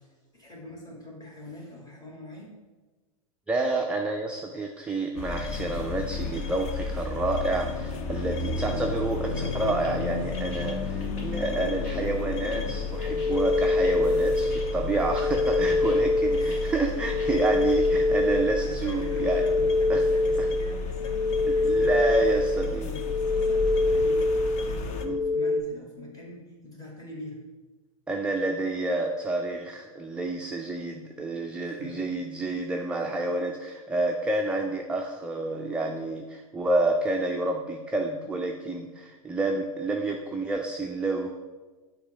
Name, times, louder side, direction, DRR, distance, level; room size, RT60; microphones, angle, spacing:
voice 1, 0.0-2.5 15.7-16.0 16.4-16.7 17.3-17.6 18.6-24.3 24.6-27.4 31.6-32.0, left 1 dB, 20° left, -2 dB, 1.7 m, -43 dB
voice 2, 3.5-19.4 19.9-20.0 20.4-20.5 21.5-22.9 25.0-25.2 28.1-41.3, right 2 dB, 5° right, 1 dB, 0.3 m, -29 dB
sound 1, 5.2-25.1, left 5 dB, 35° left, 0.6 m, -33 dB
sound 2, 9.5-17.9, left 3 dB, 55° left, 1.8 m, -51 dB
sound 3, 12.8-25.6, left 2 dB, 80° left, 0.5 m, -25 dB
6.9 x 2.8 x 4.9 m, 1.3 s
hypercardioid pair, 110°, 19 cm